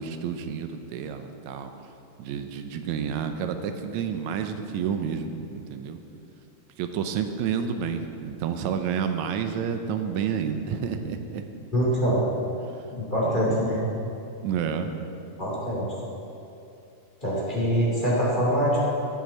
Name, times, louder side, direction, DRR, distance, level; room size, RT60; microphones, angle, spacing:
voice 1, 0.0-1.7 2.2-6.0 6.8-11.4 13.3-13.7 14.4-14.9, right 7 dB, 75° right, 7 dB, 2.0 m, -30 dB
voice 2, 11.7-12.2 13.0-13.8 15.4-15.9 17.2-18.8, equal, 15° left, -6 dB, 2.8 m, -24 dB
18.0 x 6.1 x 4.2 m, 2.7 s
omnidirectional pair, 3.5 m